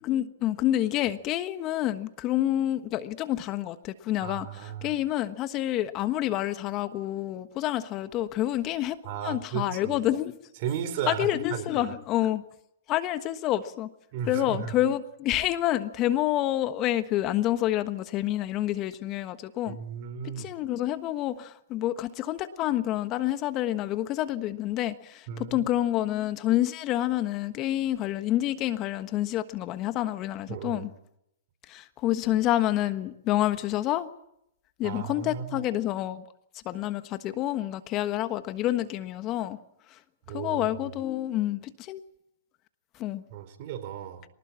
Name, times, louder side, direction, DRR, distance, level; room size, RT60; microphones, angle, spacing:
voice 1, 0.0-9.0 9.2-10.3 11.1-12.4 12.9-13.9 14.3-19.8 20.2-30.9 31.7-34.1 34.8-36.2 36.6-39.6 40.3-42.0 43.0-43.2, left 13 dB, 35° left, 1.3 m, -28 dB
voice 2, 4.2-4.9 9.0-10.0 10.6-11.9 14.1-14.7 19.7-20.5 25.3-25.7 30.5-30.9 34.8-35.6 40.3-40.9 43.3-44.3, right 8 dB, 50° right, 4.4 m, -35 dB
24.5 x 19.5 x 7.5 m
hypercardioid pair, 125°, 0 cm